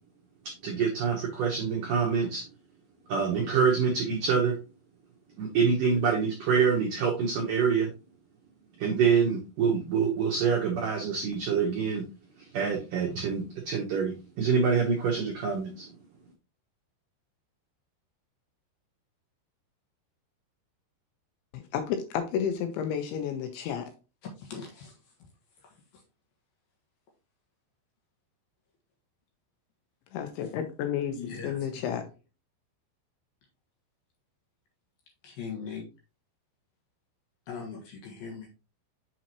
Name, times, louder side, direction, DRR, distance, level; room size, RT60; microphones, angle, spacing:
voice 1, 0.6-2.4 3.1-4.6 5.4-7.9 8.8-12.0 12.5-15.9, right 6 dB, 80° right, 0 dB, 1.9 m, -26 dB
voice 2, 21.5-23.9 30.1-31.2 31.4-32.1, left 8 dB, 80° left, 7 dB, 3.0 m, -31 dB
voice 3, 24.4-24.9 31.1-32.0 35.2-35.8 37.5-38.5, left 6 dB, 60° left, 0 dB, 2.7 m, -40 dB
7.2 x 5.8 x 2.9 m, 0.30 s
omnidirectional pair, 5.7 m